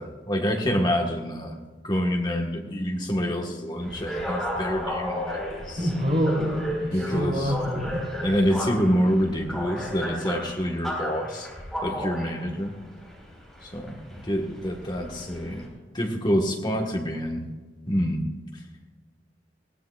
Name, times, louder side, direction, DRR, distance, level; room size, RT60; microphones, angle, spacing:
voice 1, 0.0-1.6 1.8-5.9 6.8-7.5 8.2-11.5 11.8-12.8 13.6-15.7 15.9-17.5 17.9-18.2, equal, 25° left, 2 dB, 1.5 m, -27 dB
sound 1, 3.8-15.7, left 1 dB, ahead, 4.6 m, -34 dB
voice 2, 5.8-6.6 6.9-8.0, equal, 50° right, -5 dB, 3.4 m, -26 dB
20.5 x 16.5 x 2.5 m, 1.3 s
head